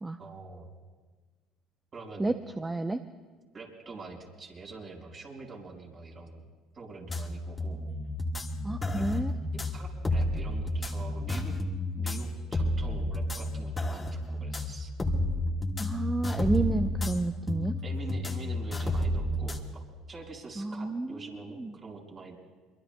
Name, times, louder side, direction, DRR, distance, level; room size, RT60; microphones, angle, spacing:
voice 1, 0.2-0.7 1.9-2.3 3.5-6.4 6.7-7.8 9.7-11.5 12.0-14.9 17.8-19.8 20.1-22.4, right 3 dB, 40° right, 0 dB, 4.9 m, -45 dB
voice 2, 2.2-3.0 8.6-9.3 15.8-17.8 20.6-21.7, right 3 dB, 15° right, 8 dB, 0.6 m, -31 dB
sound 1, 7.1-19.6, left 1 dB, 25° left, 1.5 m, -31 dB
23.5 x 23.0 x 2.2 m, 1.4 s
hypercardioid pair, 75°, 0 cm